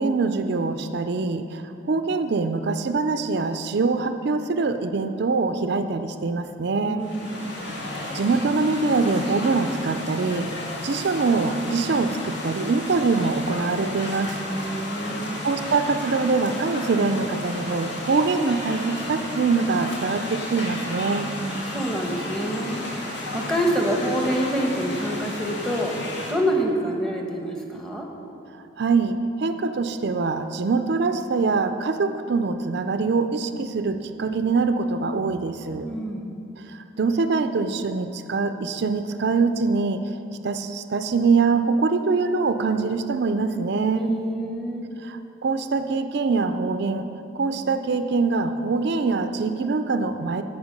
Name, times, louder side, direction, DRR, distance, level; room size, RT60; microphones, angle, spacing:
voice 1, 0.0-7.0 8.1-10.5 10.8-14.4 14.6-14.7 15.4-21.3 28.8-35.9 36.7-40.0 40.4-44.2 45.0-47.1 47.3-50.4, right 4 dB, 55° right, 9 dB, 0.4 m, -24 dB
voice 2, 6.8-7.6 14.5-15.4 21.4-26.0 26.3-28.1 35.8-36.4 43.9-44.9, equal, 5° left, 1 dB, 1.0 m, -27 dB
sound 1, 7.0-26.3, left 1 dB, 55° left, 1.9 m, -33 dB
16.0 x 5.6 x 5.3 m, 2.7 s
head